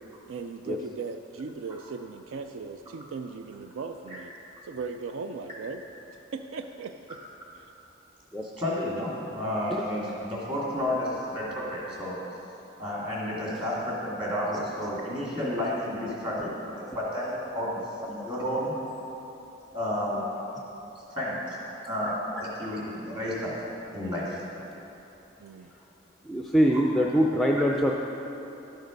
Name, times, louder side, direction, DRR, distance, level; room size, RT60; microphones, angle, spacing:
voice 1, 0.3-4.3 4.6-5.8 6.1-7.2 7.5-7.7 25.4-25.7, right 4 dB, 75° right, 7 dB, 0.4 m, -38 dB
voice 2, 8.6-12.2 12.8-17.7 18.0-18.7 19.7-20.2 21.1-23.5 23.9-24.4, left 1 dB, 25° right, -6 dB, 2.4 m, -31 dB
voice 3, 26.2-27.9, equal, ahead, -1 dB, 0.4 m, -23 dB
12.0 x 6.4 x 5.2 m, 3.0 s
head